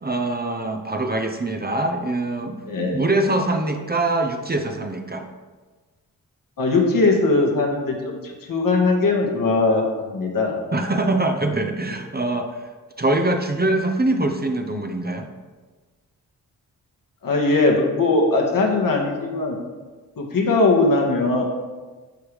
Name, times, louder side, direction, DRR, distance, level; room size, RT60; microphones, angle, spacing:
voice 1, 0.0-2.6 2.8-5.3 10.7-12.5 13.0-15.3, right 2 dB, 25° right, 5 dB, 0.9 m, -23 dB
voice 2, 2.7-3.0 6.6-8.2 8.5-10.6 17.2-19.6 20.2-21.4, left 3 dB, 55° left, 0 dB, 1.8 m, -20 dB
11.5 x 4.7 x 3.4 m, 1.3 s
supercardioid pair, 40°, 39 cm